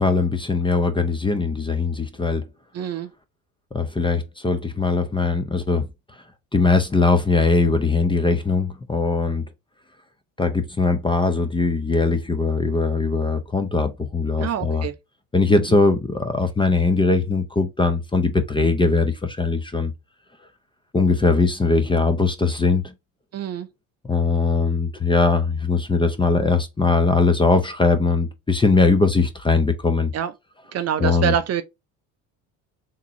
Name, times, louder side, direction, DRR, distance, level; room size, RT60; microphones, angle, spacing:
voice 1, 0.0-2.5 3.7-5.9 6.5-9.4 10.4-14.9 15.3-19.9 20.9-22.9 24.0-30.1 31.0-31.3, left 3 dB, 10° left, 0.5 m, -20 dB
voice 2, 2.7-3.1 14.4-14.9 15.7-15.8 23.3-23.7 30.1-30.3 30.7-31.6, right 9 dB, 40° right, 0.5 m, -25 dB
3.6 x 2.9 x 2.9 m
supercardioid pair, 80°, 42 cm